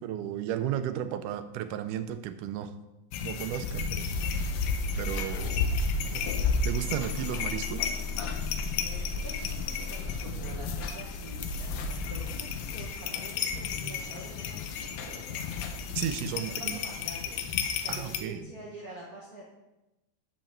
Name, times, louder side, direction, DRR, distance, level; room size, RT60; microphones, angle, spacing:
voice 1, 0.0-2.7 3.2-4.1 5.0-5.7 6.1-6.3 6.6-7.9 16.0-16.8 17.9-18.4, right 10 dB, 90° right, 10 dB, 2.2 m, -34 dB
sound 1, 3.1-18.2, left 5 dB, 90° left, 2.2 m, -32 dB
sound 2, 4.1-16.8, left 5 dB, 70° left, 1.5 m, -47 dB
sound 3, 4.5-10.9, left 3 dB, 55° left, 1.7 m, -39 dB
voice 2, 8.8-15.5 16.3-19.4, right 1 dB, 65° right, -3 dB, 0.9 m, -46 dB
6.9 x 5.3 x 7.2 m, 0.99 s
omnidirectional pair, 3.5 m